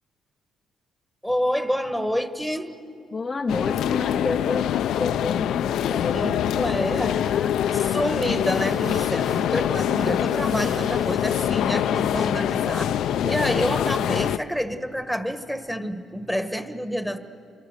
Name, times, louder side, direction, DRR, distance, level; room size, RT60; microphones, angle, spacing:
voice 1, 1.2-2.8 6.1-7.2 7.7-12.9 13.2-17.2, equal, ahead, 9 dB, 1.5 m, -28 dB
voice 2, 3.1-7.6 13.2-14.0, left 4 dB, 30° left, 6 dB, 0.6 m, -31 dB
sound 1, 3.5-14.4, left 10 dB, 80° left, 0.5 m, -24 dB
sound 2, 8.4-13.1, right 3 dB, 45° right, 3.5 m, -47 dB
29.0 x 25.0 x 6.7 m, 2.5 s
cardioid pair, 90°, 0 cm